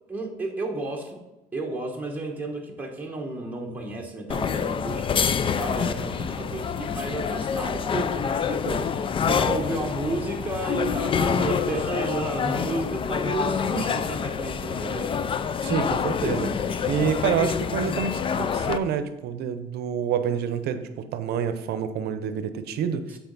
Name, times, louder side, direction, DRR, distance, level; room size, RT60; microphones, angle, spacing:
voice 1, 0.1-1.2 1.5-15.2 23.1-23.2, right 2 dB, 10° right, 0 dB, 1.2 m, -32 dB
sound 1, 4.3-18.8, left 6 dB, 30° left, 0.4 m, -27 dB
voice 2, 15.6-16.5 16.9-23.0, right 7 dB, 70° right, 10 dB, 0.7 m, -27 dB
8.2 x 4.1 x 4.0 m, 0.97 s
cardioid pair, 110°, 17 cm